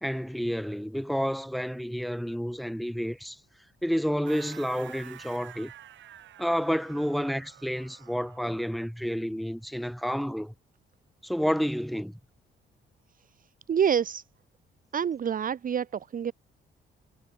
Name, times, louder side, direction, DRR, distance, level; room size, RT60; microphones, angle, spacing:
voice 1, 0.0-3.4 3.8-5.7 6.4-10.5 11.2-12.1, equal, ahead, 2.1 m, -30 dB
sound 1, 4.3-8.7, right 11 dB, 70° right, 2.4 m, -49 dB
voice 2, 13.7-14.2 14.9-16.3, right 8 dB, 45° right, 1.0 m, -27 dB
cardioid pair, 90°, 20 cm